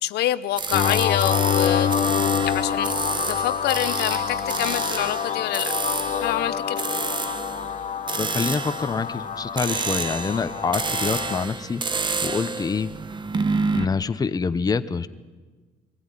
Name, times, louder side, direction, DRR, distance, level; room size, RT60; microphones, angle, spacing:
voice 1, 0.0-1.9 2.4-2.9 3.3-6.8, left 13 dB, 75° left, 14 dB, 0.8 m, -27 dB
sound 1, 0.6-13.8, right 4 dB, 25° right, 1.0 m, -29 dB
sound 2, 0.7-11.5, left 8 dB, 45° left, 1.1 m, -26 dB
voice 2, 8.2-12.9 13.7-15.1, left 5 dB, 20° left, 11 dB, 0.8 m, -26 dB
23.0 x 15.5 x 9.8 m, 1.3 s
cardioid pair, 110°, 17 cm